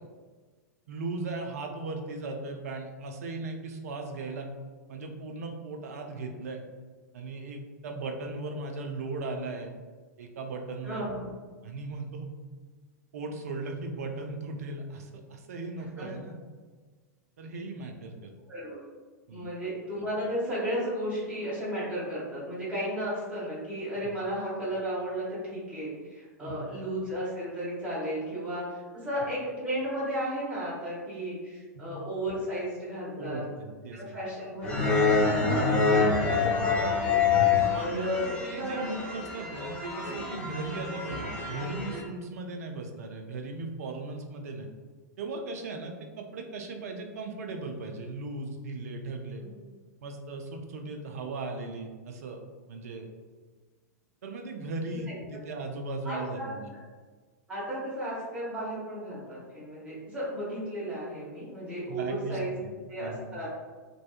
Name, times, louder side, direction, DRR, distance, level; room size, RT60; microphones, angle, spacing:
voice 1, 0.9-4.5 4.9-6.7 7.1-9.7 10.2-11.0 11.6-12.3 13.1-16.4 17.4-18.3 19.3-19.4 24.0-24.1 26.4-26.5 31.8-32.0 33.2-34.2 37.7-44.7 45.2-49.4 50.0-52.4 52.7-53.1 54.2-56.7 61.9-62.7 63.0-63.3, right 3 dB, 60° right, 4 dB, 0.4 m, -37 dB
voice 2, 10.8-11.3 16.0-16.1 18.5-18.8 19.3-33.5 33.9-37.2 37.8-38.8 49.4-49.5 54.9-55.0 55.3-55.4 56.0-56.5 57.5-62.6 62.9-63.5, equal, 15° right, -8 dB, 1.0 m, -34 dB
sound 1, 34.6-42.0, left 5 dB, 10° left, 0.7 m, -26 dB
2.6 x 2.2 x 2.4 m, 1.4 s
figure-of-eight pair, 95°, 9 cm